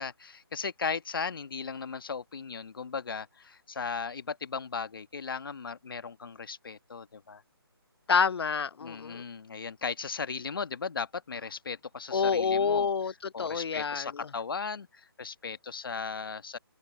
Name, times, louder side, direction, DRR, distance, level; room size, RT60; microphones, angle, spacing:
voice 1, 0.0-7.4 8.8-12.9 13.3-16.6, left 5 dB, 60° left, 1.6 m, -37 dB
voice 2, 8.1-9.2 12.1-14.3, left 6 dB, 75° left, 0.4 m, -28 dB
open air
figure-of-eight pair, 160°, 13 cm